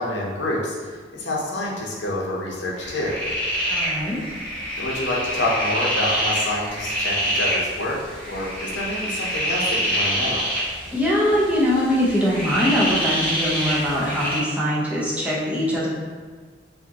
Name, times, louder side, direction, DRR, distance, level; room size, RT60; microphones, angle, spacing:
voice 1, 0.0-3.2 4.8-8.0 8.3-10.4, left 1 dB, 75° left, -4 dB, 0.8 m, -27 dB
sound 1, 2.8-14.4, equal, 10° left, 1.2 m, -26 dB
voice 2, 3.7-4.2 10.9-15.9, equal, 10° right, -7 dB, 0.7 m, -22 dB
4.9 x 2.7 x 2.8 m, 1.5 s
head